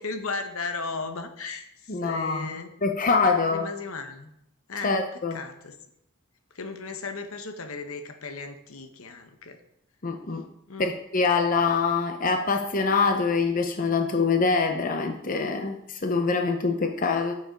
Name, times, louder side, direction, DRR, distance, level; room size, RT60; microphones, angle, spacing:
voice 1, 0.0-2.7 3.5-4.3 4.7-5.0 5.3-5.8 6.5-9.6 10.7-10.9, left 4 dB, 70° left, 7 dB, 0.9 m, -36 dB
voice 2, 1.9-2.5 2.8-3.7 4.8-5.4 10.0-10.4 10.8-17.3, left 4 dB, 40° left, 5 dB, 0.7 m, -24 dB
7.6 x 6.8 x 5.1 m, 0.78 s
head